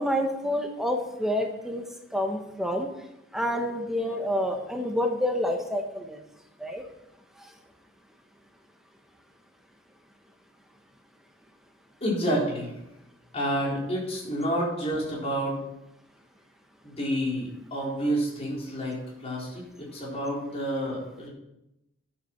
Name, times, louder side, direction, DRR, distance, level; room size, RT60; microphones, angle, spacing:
voice 1, 0.0-1.8 2.1-2.9 3.3-6.2 6.6-6.8, equal, ahead, 3 dB, 1.2 m, -28 dB
voice 2, 12.0-12.7 13.3-15.6 16.8-21.3, equal, 30° left, -4 dB, 4.2 m, -29 dB
11.0 x 8.6 x 5.9 m, 0.88 s
head